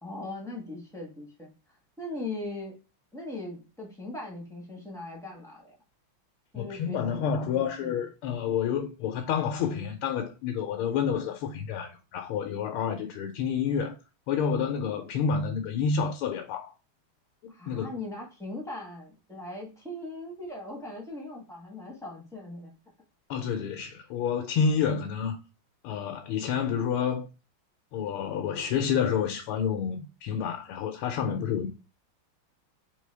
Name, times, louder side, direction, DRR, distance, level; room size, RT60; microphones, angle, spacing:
voice 1, 0.0-1.5 2.0-2.8 3.1-5.7 6.5-8.0 17.5-22.7, left 2 dB, ahead, 1.0 m, -39 dB
voice 2, 6.5-14.0 14.3-16.7 17.4-17.9 23.3-25.4 25.8-27.3 27.9-31.7, left 7 dB, 85° left, 1.5 m, -29 dB
3.7 x 3.4 x 3.2 m
omnidirectional pair, 2.3 m